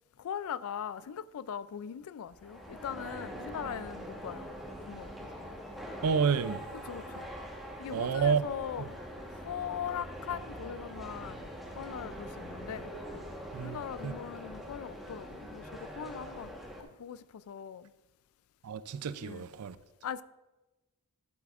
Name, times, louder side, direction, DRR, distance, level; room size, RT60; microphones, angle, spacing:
voice 1, 0.2-4.5 4.9-5.3 6.7-7.3 7.8-9.0 9.3-11.5 11.8-12.9 13.6-17.9 19.2-19.5 20.0-20.2, left 8 dB, 70° left, 0.3 m, -40 dB
sound 1, 2.3-16.8, equal, ahead, 1.2 m, -43 dB
voice 2, 6.0-6.6 7.9-8.5 13.5-13.8 14.0-14.1 18.6-19.8, right 6 dB, 80° right, 0.4 m, -29 dB
11.5 x 7.6 x 2.5 m
head